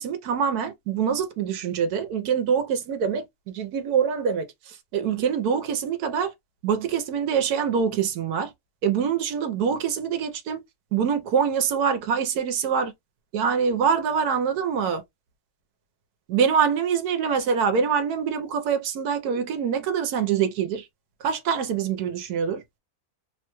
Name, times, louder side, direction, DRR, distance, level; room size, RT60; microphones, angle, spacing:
voice 1, 0.0-3.3 3.5-6.3 6.6-8.5 8.8-10.6 10.9-12.9 13.3-15.0 16.3-20.9 21.2-22.6, right 7 dB, 85° right, 1.2 m, -25 dB
3.1 x 2.2 x 2.9 m
omnidirectional pair, 1.6 m